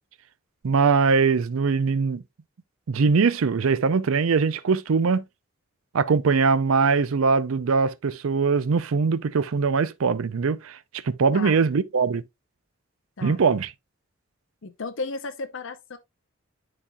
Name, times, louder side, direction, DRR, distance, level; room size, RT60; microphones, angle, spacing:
voice 1, 0.6-2.2 2.9-5.2 5.9-10.8 11.0-12.2 13.2-13.7, right 5 dB, 75° right, 0.5 m, -21 dB
voice 2, 14.6-16.0, left 3 dB, 65° left, 0.6 m, -34 dB
10.0 x 4.1 x 2.3 m
head